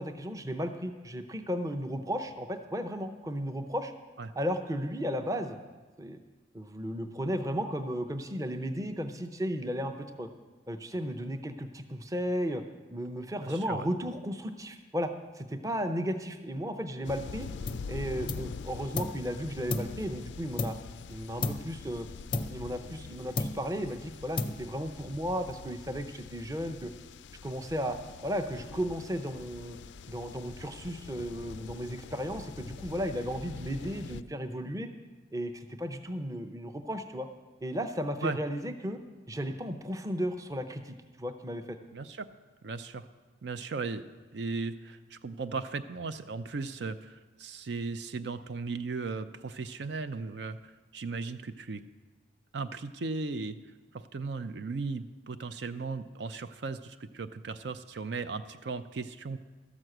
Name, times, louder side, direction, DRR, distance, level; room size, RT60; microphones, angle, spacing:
voice 1, 0.0-3.9 4.4-5.6 6.0-6.2 6.5-10.3 10.7-12.6 12.9-17.5 17.9-20.8 21.1-22.1 22.5-26.9 27.4-29.8 30.1-34.9 35.3-37.3 37.6-39.0 39.3-41.8, equal, 20° right, 6 dB, 0.6 m, -34 dB
voice 2, 13.4-13.8 38.2-38.4 41.9-42.3 42.6-43.1 43.4-44.0 44.3-51.8 52.5-53.6 53.9-59.4, right 4 dB, 70° right, 10 dB, 0.5 m, -37 dB
sound 1, 17.0-34.2, left 5 dB, 80° left, 0.4 m, -45 dB
sound 2, 17.7-17.9 18.3-19.3 19.7-21.0 21.4-21.8 22.3-23.1 23.4-23.9 24.4-24.9, left 3 dB, 25° left, 0.5 m, -35 dB
13.0 x 6.1 x 7.8 m, 1.3 s
head